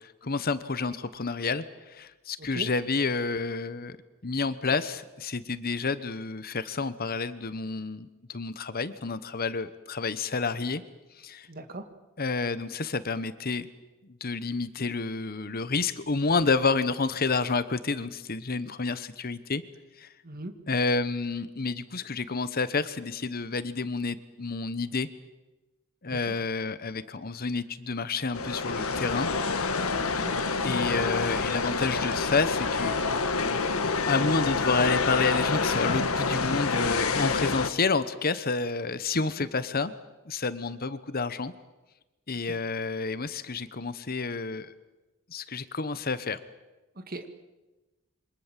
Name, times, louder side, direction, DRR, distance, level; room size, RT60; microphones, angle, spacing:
voice 1, 0.0-4.0 4.2-10.8 11.2-11.5 12.2-13.7 14.2-19.6 20.0-20.1 20.7-25.1 26.0-29.3 30.6-32.9 33.3-33.4 34.1-39.9 40.3-41.5 42.3-44.7 45.3-46.4, left 4 dB, 45° left, 14 dB, 1.1 m, -29 dB
voice 2, 11.5-11.9 20.2-20.5 26.1-26.4 30.0-30.3 39.4-39.5 42.4-42.6 47.0-47.3, right 2 dB, 45° right, 8 dB, 2.2 m, -39 dB
sound 1, 28.3-37.7, left 4 dB, 80° left, 1.7 m, -27 dB
27.5 x 25.0 x 7.5 m, 1.1 s
head